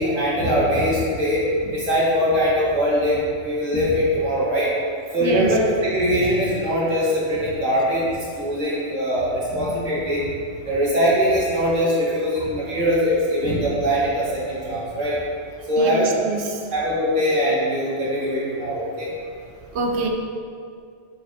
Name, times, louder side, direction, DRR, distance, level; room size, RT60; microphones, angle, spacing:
voice 1, 0.0-1.4 1.7-4.7 5.1-8.1 8.4-10.3 10.6-15.2 15.7-16.1 16.7-19.1, equal, 90° right, -7 dB, 2.5 m, -22 dB
voice 2, 5.2-5.5 15.8-16.6 19.7-20.1, right 3 dB, 65° right, 3 dB, 1.1 m, -25 dB
8.4 x 7.1 x 3.6 m, 2.3 s
omnidirectional pair, 1.3 m